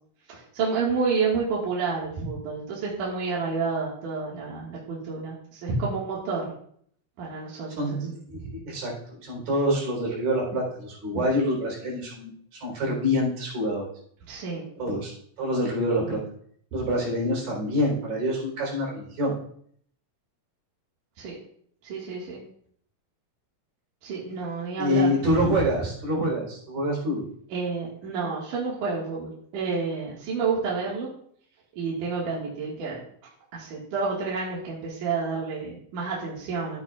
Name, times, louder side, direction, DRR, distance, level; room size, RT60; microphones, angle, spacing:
voice 1, 0.3-6.5 7.2-7.9 8.3-8.5 14.3-14.6 21.2-21.4 21.8-22.4 24.0-25.4 27.5-31.1 31.8-33.0 33.5-36.8, right 4 dB, 70° right, -5 dB, 3.2 m, -29 dB
voice 2, 7.8-8.2 8.5-8.9 9.2-12.3 12.6-13.9 14.8-15.1 15.4-16.2 16.7-19.3 24.8-27.3, equal, 85° right, -3 dB, 5.5 m, -26 dB
12.5 x 9.6 x 2.4 m, 0.63 s
omnidirectional pair, 4.0 m